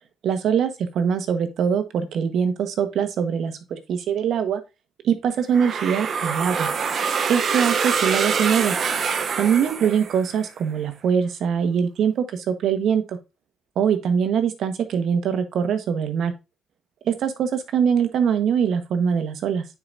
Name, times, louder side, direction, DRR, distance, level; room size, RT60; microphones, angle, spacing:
voice 1, 0.2-4.6 5.0-6.7 7.3-8.7 9.4-13.2 13.7-16.3 17.0-19.7, right 7 dB, 70° right, 8 dB, 1.3 m, -23 dB
sound 1, 5.5-10.5, right 6 dB, 55° right, 0.8 m, -25 dB
9.5 x 4.8 x 2.7 m, 0.26 s
cardioid pair, 90°, 0 cm